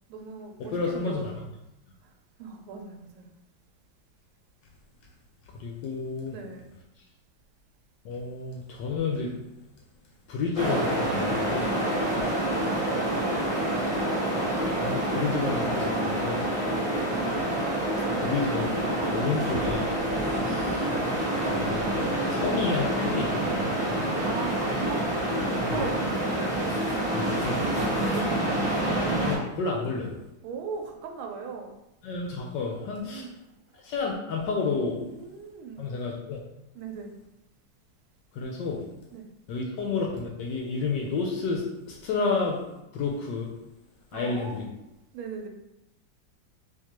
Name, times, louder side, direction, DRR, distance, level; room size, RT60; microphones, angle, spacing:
voice 1, 0.1-1.5 2.4-3.3 6.3-6.7 11.8-14.0 16.7-16.9 20.1-20.3 24.2-25.1 25.6-26.4 27.5-27.8 28.1-28.4 30.4-31.7 33.0-33.3 35.0-35.9 36.7-37.1 39.1-39.3 44.1-44.7 45.1-45.5, right 5 dB, 90° right, 3 dB, 1.5 m, -39 dB
voice 2, 0.6-1.3 5.6-6.3 8.0-9.3 10.3-11.7 14.4-16.5 18.2-18.8 19.1-19.9 21.4-21.9 22.3-23.8 25.6-25.9 27.1-27.7 29.3-30.1 32.0-33.3 33.8-35.0 35.8-36.4 38.3-38.9 39.5-42.7 42.9-43.5 44.1-44.7, left 4 dB, 75° left, -1 dB, 1.0 m, -30 dB
sound 1, 10.5-29.4, right 1 dB, 35° left, 0.5 m, -27 dB
sound 2, 19.4-22.8, right 1 dB, 65° right, 0.6 m, -43 dB
3.6 x 2.8 x 2.9 m, 0.90 s
omnidirectional pair, 2.3 m